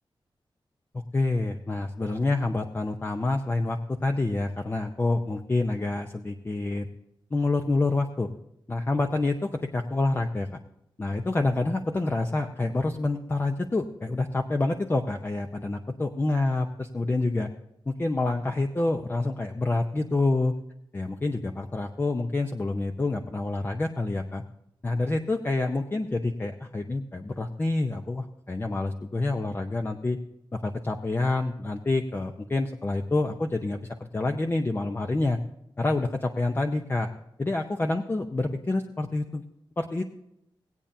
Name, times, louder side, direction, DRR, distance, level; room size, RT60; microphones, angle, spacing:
voice 1, 1.1-6.9 7.3-8.3 8.7-10.5 11.0-17.5 17.9-20.5 20.9-24.4 24.8-30.2 30.5-35.4 35.8-37.1 37.4-39.4 39.8-40.0, left 2 dB, 25° left, 4 dB, 0.7 m, -27 dB
19.5 x 8.8 x 2.7 m, 0.80 s
wide cardioid pair, 120°, 9 cm